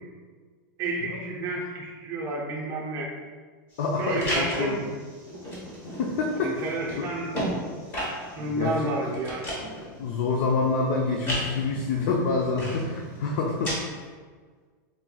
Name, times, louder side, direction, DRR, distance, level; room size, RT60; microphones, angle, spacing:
voice 1, 0.8-3.1 4.0-4.9 6.4-7.3 8.4-9.5, right 2 dB, 25° right, -3 dB, 0.6 m, -30 dB
sound 1, 3.7-13.8, equal, 20° left, 1.0 m, -35 dB
voice 2, 3.8-4.8 6.0-7.1 8.4-9.1 10.0-13.9, left 4 dB, 45° left, 0 dB, 0.4 m, -27 dB
4.3 x 3.6 x 2.3 m, 1.5 s
supercardioid pair, 170°, 11 cm